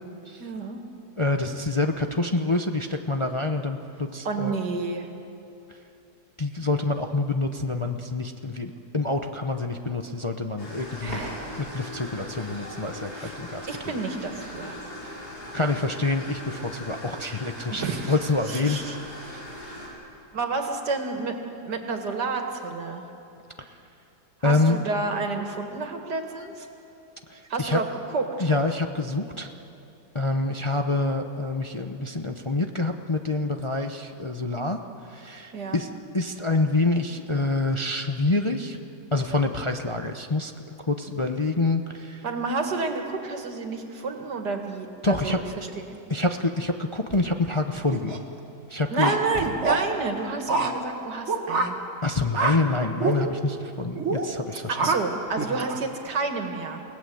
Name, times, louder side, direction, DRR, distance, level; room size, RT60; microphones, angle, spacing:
voice 1, 0.4-0.8 4.2-5.1 11.0-11.6 13.1-13.4 13.7-14.8 17.7-18.2 18.5-19.0 20.3-21.4 21.7-23.0 24.4-26.7 27.5-28.5 35.5-35.8 42.2-45.4 45.8-46.0 48.9-51.7 54.5-56.8, right 3 dB, 85° right, 4 dB, 2.6 m, -30 dB
voice 2, 1.2-4.5 6.4-11.2 11.6-13.7 15.5-18.8 19.3-19.4 24.4-24.8 27.3-27.8 28.4-29.5 30.1-34.8 35.1-35.9 36.1-38.8 39.1-40.5 40.9-42.2 45.0-45.4 46.1-48.1 48.7-49.1 52.0-54.9, left 2 dB, 30° left, 5 dB, 0.6 m, -26 dB
sound 1, 10.6-19.9, left 1 dB, 75° left, 6.5 m, -39 dB
Thump thud, 45.1-45.7 47.1-47.6 49.3-50.0, right 1 dB, 20° right, 1.3 m, -42 dB
sound 2, 47.9-48.2 49.0-49.8 50.5-50.7 51.3-51.7 52.3-52.6 53.0-53.2 54.0-54.3 54.7-55.0 55.4-55.9, right 4 dB, 45° right, 1.9 m, -25 dB
28.5 x 18.0 x 7.8 m, 2.8 s
omnidirectional pair, 1.7 m